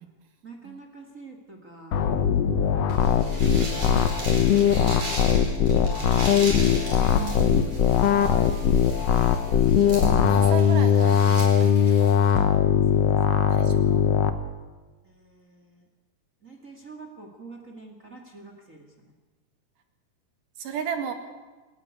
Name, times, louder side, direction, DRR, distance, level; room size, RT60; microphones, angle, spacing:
voice 1, 0.4-2.0 3.0-3.6 3.9-8.8 12.3-14.0 15.0-15.8 16.4-19.1, right 3 dB, 25° right, 3 dB, 1.9 m, -46 dB
sound 1, 1.9-14.3, left 8 dB, 65° left, 1.7 m, -20 dB
sound 2, 2.9-12.4, right 2 dB, 45° right, 5.7 m, -38 dB
voice 2, 7.1-7.7 10.3-12.1 13.5-14.0 20.6-21.1, right 8 dB, 65° right, 6 dB, 3.4 m, -34 dB
27.5 x 12.0 x 9.5 m, 1.3 s
omnidirectional pair, 4.2 m